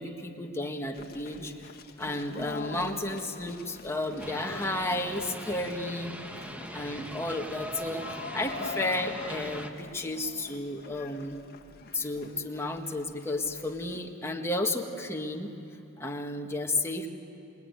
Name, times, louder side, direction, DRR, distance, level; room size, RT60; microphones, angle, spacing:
voice 1, 0.0-1.5 2.0-6.1 6.7-8.1 8.3-11.4 11.9-15.5 16.0-17.1, left 2 dB, 10° left, 2 dB, 1.6 m, -32 dB
sound 1, 0.9-14.0, left 3 dB, 45° left, 1.5 m, -44 dB
sound 2, 4.2-9.7, equal, 5° right, 1.2 m, -40 dB
27.0 x 21.5 x 9.6 m, 2.7 s
head